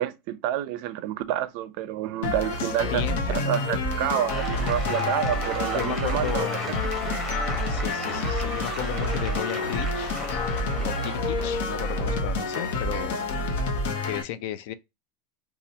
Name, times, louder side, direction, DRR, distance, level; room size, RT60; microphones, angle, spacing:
voice 1, 0.0-3.0 3.3-6.5, right 12 dB, 50° right, 0.4 m, -28 dB
sound 1, 2.2-14.2, left 2 dB, 75° left, 0.8 m, -28 dB
voice 2, 2.6-3.7 5.7-6.6 7.7-10.2 10.9-13.2 14.0-14.7, left 11 dB, 60° left, 0.4 m, -34 dB
sound 2, 2.8-3.7 4.1-8.6 9.0-13.5, left 1 dB, 15° left, 1.7 m, -45 dB
sound 3, 4.3-11.5, right 1 dB, 5° right, 1.0 m, -35 dB
4.2 x 2.3 x 2.7 m
supercardioid pair, 165°, 0 cm